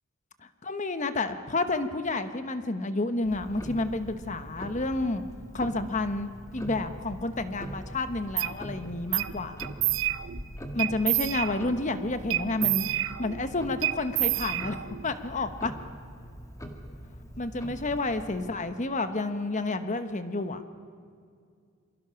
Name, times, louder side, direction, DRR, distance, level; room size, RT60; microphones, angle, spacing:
voice 1, 0.6-5.2 5.5-9.6 10.7-14.8 15.0-15.7 17.4-20.6, left 2 dB, 35° left, 9 dB, 1.1 m, -30 dB
Tick-tock, 3.2-18.5, equal, 15° left, 1.8 m, -43 dB
sound 1, 8.4-8.5 9.1-9.3 9.6-10.4 10.8-11.8 12.3-13.4 13.8-15.1, right 15 dB, 65° right, 0.7 m, -28 dB
27.0 x 23.5 x 5.8 m, 2.2 s
head